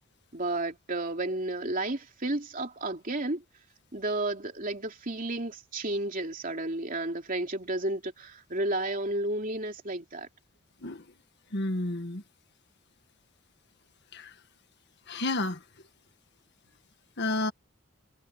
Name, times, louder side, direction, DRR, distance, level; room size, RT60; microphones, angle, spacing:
voice 1, 0.3-3.4 3.9-10.3, right 2 dB, 40° right, 3.1 m, -32 dB
voice 2, 11.5-12.2 14.1-14.3 15.1-15.6 17.2-17.5, left 2 dB, 55° left, 1.6 m, -30 dB
head